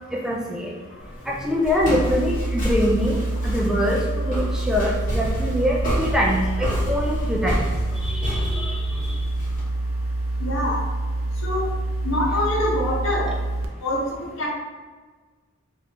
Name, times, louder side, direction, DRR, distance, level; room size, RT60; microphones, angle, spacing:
voice 1, 0.1-0.7 1.3-3.2 3.5-7.7 8.0-9.2, equal, 5° right, -3 dB, 0.3 m, -24 dB
Walk footsteps, 1.0-9.6, equal, 40° left, 1.1 m, -30 dB
sound 1, 1.8-13.7, right 2 dB, 75° right, 0.4 m, -27 dB
voice 2, 10.4-10.8 11.4-11.7 12.0-13.3 13.8-14.0 14.4-14.5, left 1 dB, 65° left, -3 dB, 0.9 m, -24 dB
3.4 x 2.6 x 2.8 m, 1.4 s
head